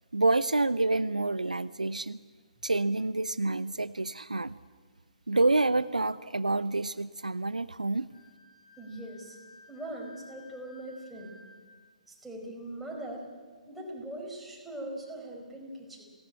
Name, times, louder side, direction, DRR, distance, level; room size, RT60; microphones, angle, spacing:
voice 1, 0.1-2.2 2.6-4.6 5.3-8.1, right 2 dB, 80° right, 15 dB, 0.7 m, -28 dB
Wind instrument woodwind instrument, 8.1-11.8, left 2 dB, 85° left, 6.2 m, -55 dB
voice 2, 8.8-9.4 9.7-11.4 12.1-13.3 13.7-16.1, right 1 dB, ahead, -3 dB, 4.9 m, -41 dB
23.5 x 18.0 x 8.7 m, 1.5 s
figure-of-eight pair, 130°, 4 cm